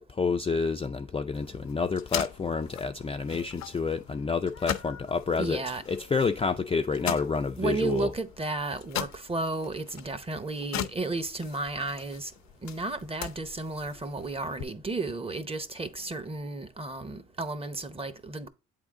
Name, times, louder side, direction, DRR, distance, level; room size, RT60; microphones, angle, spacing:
voice 1, 0.1-5.6 5.9-8.1, left 4 dB, 20° left, 0.4 m, -29 dB
sound 1, 1.3-14.6, left 11 dB, 65° left, 0.6 m, -40 dB
voice 2, 5.4-5.8 7.6-12.3 12.6-18.5, right 3 dB, 20° right, 0.7 m, -33 dB
8.2 x 3.7 x 3.6 m
cardioid pair, 90°, 30 cm